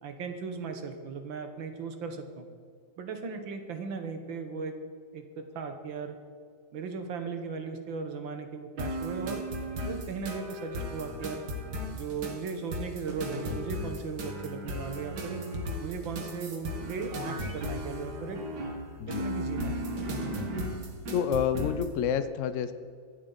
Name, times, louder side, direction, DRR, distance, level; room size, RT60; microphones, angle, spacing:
voice 1, 0.0-2.5 3.0-4.8 5.1-6.2 6.7-9.5 9.8-11.4 11.9-15.4 15.8-18.4 19.1-19.8, right 5 dB, 85° right, 6 dB, 2.0 m, -37 dB
sound 1, 8.8-21.9, equal, 60° right, 2.0 m, -35 dB
voice 2, 21.1-22.7, left 8 dB, 60° left, 11 dB, 0.8 m, -28 dB
24.0 x 8.2 x 4.0 m, 2.3 s
omnidirectional pair, 2.0 m